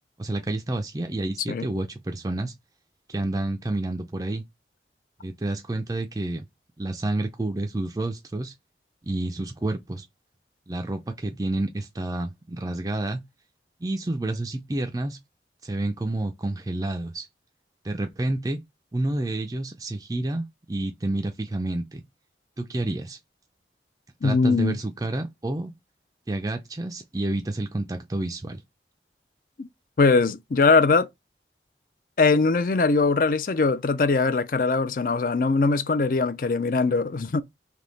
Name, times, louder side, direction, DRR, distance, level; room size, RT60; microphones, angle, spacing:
voice 1, 0.2-2.5 3.1-4.4 5.2-6.5 6.8-8.5 9.0-10.0 10.7-13.2 13.8-15.2 15.6-17.3 17.8-18.6 18.9-22.0 22.6-23.2 24.2-25.7 26.3-28.6, right 2 dB, 20° right, 0.4 m, -29 dB
voice 2, 24.2-24.8 29.6-29.7 30.0-31.1 32.2-37.4, left 4 dB, 50° left, 0.4 m, -21 dB
3.5 x 2.8 x 3.9 m
head